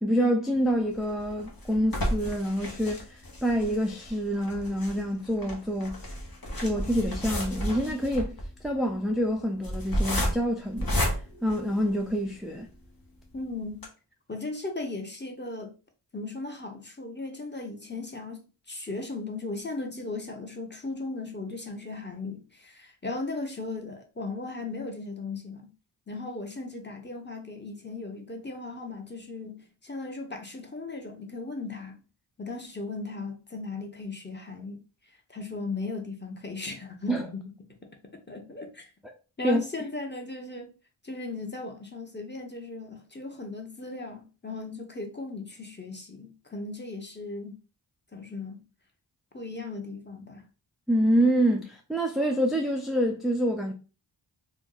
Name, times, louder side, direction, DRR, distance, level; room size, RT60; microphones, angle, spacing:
voice 1, 0.0-6.0 6.6-8.4 8.6-11.0 11.4-12.7 37.1-37.2 39.0-39.1 39.4-39.6 50.9-53.7, equal, ahead, 0.4 m, -26 dB
sound 1, 0.9-12.3 12.8-12.9 13.2-13.3 13.7-13.9, equal, 45° left, 1.0 m, -32 dB
voice 2, 13.3-13.8 14.3-15.7 16.1-25.7 26.1-32.0 32.4-34.8 35.3-37.4 37.8-37.9 38.3-38.9 39.4-40.7 41.0-47.5 48.1-48.6 49.3-50.5, left 3 dB, 20° left, 0.9 m, -37 dB
2.5 x 2.2 x 3.8 m
cardioid pair, 45°, 48 cm